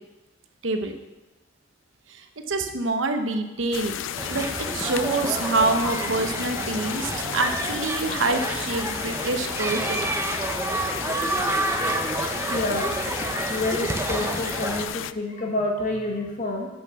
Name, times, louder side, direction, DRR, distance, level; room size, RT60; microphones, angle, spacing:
voice 1, 2.1-4.0 4.3-10.1, right 3 dB, 75° right, 6 dB, 0.9 m, -26 dB
sound 1, 3.7-15.1, left 10 dB, 70° left, 0.4 m, -33 dB
sound 2, 4.1-14.8, right 2 dB, 15° right, 0.8 m, -29 dB
voice 2, 12.0-12.9 13.5-16.7, left 2 dB, 45° left, 1 dB, 1.7 m, -28 dB
8.6 x 6.2 x 7.0 m, 1.0 s
head